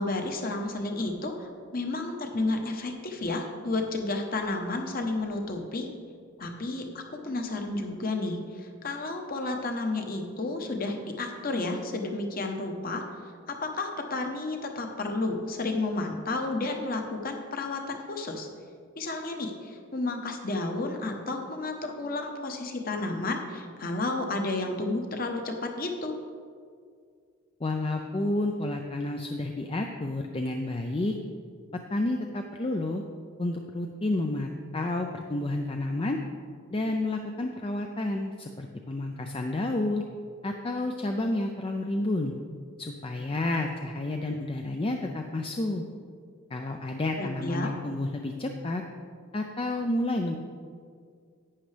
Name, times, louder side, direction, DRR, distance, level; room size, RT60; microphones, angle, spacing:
voice 1, 0.0-5.9 6.4-13.0 13.5-18.5 19.0-26.2 47.2-47.7, left 2 dB, 40° left, 4 dB, 0.9 m, -31 dB
voice 2, 27.6-31.1 31.9-33.0 33.4-36.2 36.7-40.0 40.4-42.3 42.8-45.8 46.5-48.8 49.3-50.4, left 2 dB, 25° left, 3 dB, 0.4 m, -30 dB
11.0 x 9.1 x 3.3 m, 2.2 s
head